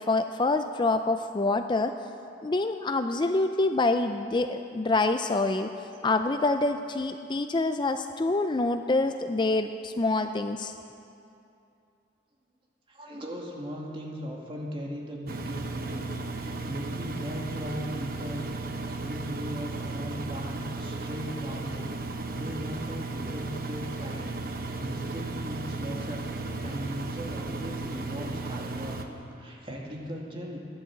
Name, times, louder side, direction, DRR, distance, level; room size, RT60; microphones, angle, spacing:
voice 1, 0.0-1.9 2.4-5.7 6.0-10.7, left 2 dB, 25° left, 8 dB, 0.4 m, -26 dB
voice 2, 12.9-18.5 19.0-21.9 22.3-24.3 24.8-29.0 29.3-30.6, equal, 30° right, -2 dB, 2.2 m, -38 dB
Engine, 15.3-29.1, right 3 dB, 55° right, 1.0 m, -35 dB
14.5 x 11.0 x 7.7 m, 2.6 s
head